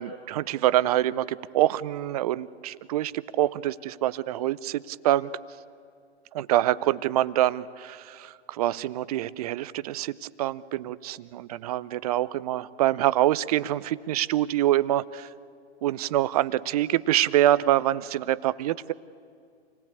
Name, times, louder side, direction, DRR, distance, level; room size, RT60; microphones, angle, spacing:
voice 1, 0.0-5.3 6.3-15.3 15.8-18.9, right 13 dB, 35° right, 17 dB, 0.6 m, -25 dB
27.5 x 18.0 x 8.5 m, 2.3 s
hypercardioid pair, 125°, 34 cm